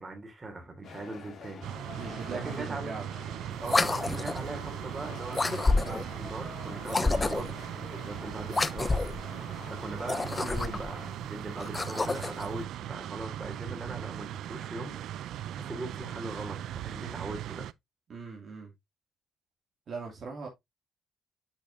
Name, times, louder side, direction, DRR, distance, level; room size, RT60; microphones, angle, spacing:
voice 1, 0.0-1.7 2.3-2.9 3.6-9.0 9.3-17.7, right 2 dB, 30° right, 3.2 m, -40 dB
sound 1, 0.8-11.1, left 6 dB, 65° left, 2.3 m, -47 dB
sound 2, 1.6-17.7, right 11 dB, 80° right, 0.4 m, -39 dB
voice 2, 2.0-3.0 18.1-18.7 19.9-20.5, right 4 dB, 55° right, 2.4 m, -40 dB
sound 3, 3.6-4.5 5.3-6.1 6.8-7.6 8.5-9.2 10.0-10.9 11.6-12.5, left 3 dB, 25° left, 0.5 m, -29 dB
8.6 x 5.4 x 2.7 m
cardioid pair, 90°, 0 cm